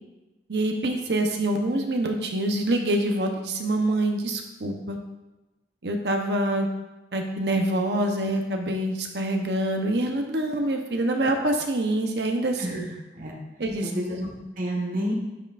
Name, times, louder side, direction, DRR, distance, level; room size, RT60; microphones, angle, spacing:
voice 1, 0.5-5.0 5.8-6.7 7.1-12.9 13.6-13.9, right 1 dB, 70° right, 3 dB, 0.9 m, -25 dB
voice 2, 13.8-15.1, equal, 50° right, -1 dB, 1.4 m, -30 dB
9.5 x 5.6 x 2.5 m, 1.1 s
head